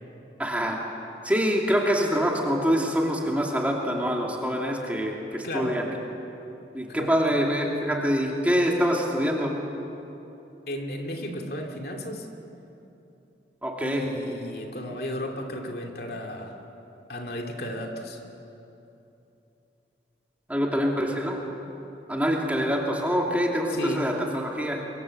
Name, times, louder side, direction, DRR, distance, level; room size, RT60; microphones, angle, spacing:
voice 1, 0.4-0.8 1.2-5.8 6.7-9.5 13.6-14.0 20.5-21.4 22.1-24.8, equal, 10° right, -1 dB, 2.8 m, -25 dB
voice 2, 5.4-5.8 6.9-7.1 10.7-12.3 13.8-16.6 17.1-18.2 23.7-24.1, left 1 dB, 55° left, 2 dB, 2.6 m, -34 dB
27.0 x 24.0 x 7.9 m, 2.9 s
head